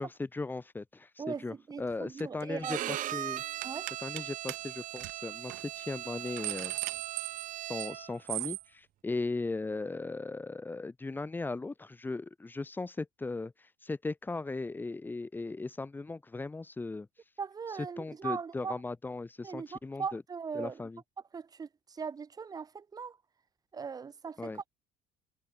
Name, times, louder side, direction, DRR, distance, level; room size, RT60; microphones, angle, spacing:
voice 1, 0.0-3.4 4.0-6.7 7.7-17.1 18.0-20.2 20.5-21.0 24.4-24.6, left 3 dB, 10° left, 4.7 m, -37 dB
voice 2, 1.2-2.9 3.6-3.9 17.4-18.8 19.4-20.8 21.3-23.2 23.7-24.7, right 5 dB, 20° right, 8.0 m, -39 dB
sound 1, 2.2-2.4 2.7-3.0 3.6-4.2 4.5-4.6 5.0-5.1 5.5-5.6 6.0-8.0 8.3-8.6, right 24 dB, 75° right, 0.8 m, -38 dB
Bowed string instrument, 2.6-8.2, right 14 dB, 50° right, 4.9 m, -39 dB
cardioid pair, 165°, 17 cm